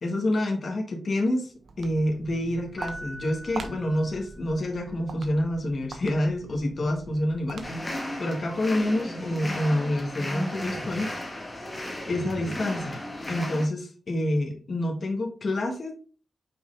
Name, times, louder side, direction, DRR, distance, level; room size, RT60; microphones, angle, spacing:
voice 1, 0.0-1.5 1.8-7.6 8.2-11.1 12.0-13.0 13.3-15.9, left 1 dB, 45° left, 1 dB, 1.6 m, -27 dB
Walk footsteps, 1.5-8.1, right 4 dB, 85° right, 0.9 m, -43 dB
Piano, 2.8-4.9, right 1 dB, 10° right, 0.9 m, -43 dB
sound 1, 7.6-13.7, left 1 dB, 20° left, 1.7 m, -34 dB
6.2 x 4.6 x 3.8 m, 0.39 s
wide cardioid pair, 145°, 0 cm